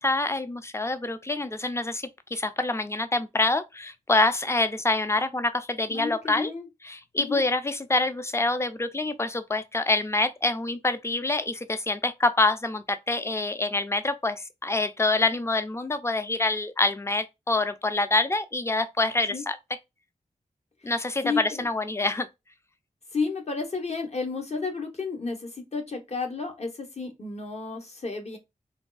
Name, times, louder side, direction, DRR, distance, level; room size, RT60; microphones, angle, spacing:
voice 1, 0.0-6.5 6.8-19.6 20.8-22.3, left 2 dB, 20° left, 0.4 m, -26 dB
voice 2, 5.9-6.7 7.2-7.4 19.3-19.4 21.2-21.7 23.1-28.4, left 4 dB, 50° left, 0.9 m, -32 dB
3.4 x 2.3 x 2.3 m
cardioid pair, 45°, 14 cm